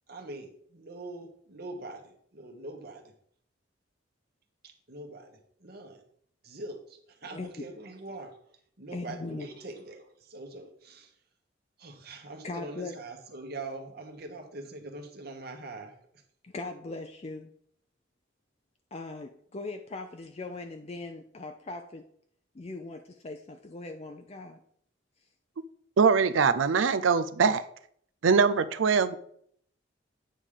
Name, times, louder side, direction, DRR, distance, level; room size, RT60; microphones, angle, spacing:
voice 1, 0.1-3.1 4.6-6.0 6.4-8.3 8.8-11.1 11.8-15.9, right 2 dB, 55° right, 4 dB, 1.3 m, -43 dB
voice 2, 7.2-7.7 8.9-9.5 12.4-13.0 16.4-17.5 18.9-22.1 22.5-24.6, left 3 dB, 35° left, 5 dB, 0.5 m, -40 dB
voice 3, 26.0-27.6 28.2-29.2, right 5 dB, 90° right, 13 dB, 0.5 m, -22 dB
9.0 x 3.7 x 6.5 m, 0.64 s
head